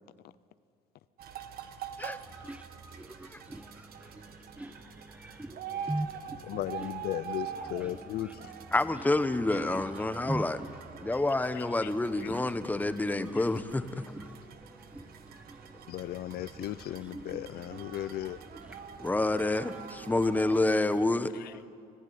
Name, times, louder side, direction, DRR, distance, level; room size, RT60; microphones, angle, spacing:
sound 1, 1.2-20.6, right 8 dB, 65° right, 1.5 m, -45 dB
voice 1, 2.4-6.5 9.5-10.7 10.9-11.0 12.3-13.5 14.1-14.6 14.9-15.6 17.1-17.4, right 1 dB, 10° right, 0.7 m, -41 dB
voice 2, 6.4-8.4 9.5-9.6 11.5-11.9 12.2-12.3 13.3-13.5 15.9-18.4 21.3-21.5, left 13 dB, 65° left, 0.6 m, -37 dB
voice 3, 8.7-10.6 11.0-14.0 19.0-21.3, left 2 dB, 10° left, 1.0 m, -28 dB
25.0 x 15.5 x 9.5 m
cardioid pair, 110°, 17 cm